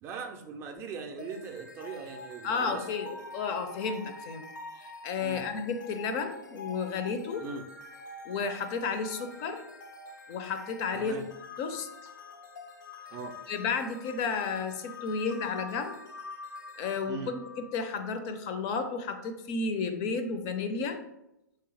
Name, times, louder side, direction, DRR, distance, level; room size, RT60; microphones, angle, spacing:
voice 1, 0.0-2.9 5.2-5.4 7.4-7.6 10.9-11.2 13.1-13.4 17.1-17.3, right 5 dB, 25° right, 4 dB, 0.4 m, -40 dB
sound 1, 1.2-18.3, left 3 dB, 75° left, 0.7 m, -46 dB
voice 2, 2.4-4.4 4.8-7.4 8.3-9.6 10.3-11.2 11.6-11.9 13.5-16.0 16.8-21.0, left 5 dB, 35° left, 7 dB, 0.4 m, -32 dB
3.3 x 2.8 x 3.2 m, 0.88 s
figure-of-eight pair, 110°, 10 cm